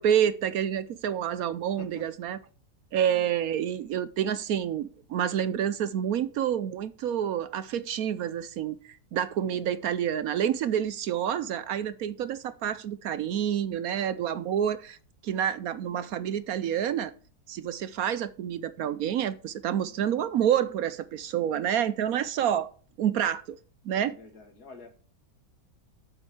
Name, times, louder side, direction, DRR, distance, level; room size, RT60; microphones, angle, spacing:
voice 1, 0.0-2.4 2.9-15.0 15.2-17.1 17.5-22.7 23.0-23.6 23.8-24.2, right 9 dB, 70° right, 0.9 m, -28 dB
voice 2, 9.4-9.8 24.0-24.9, left 3 dB, 60° left, 2.6 m, -48 dB
7.9 x 7.2 x 7.1 m
omnidirectional pair, 1.9 m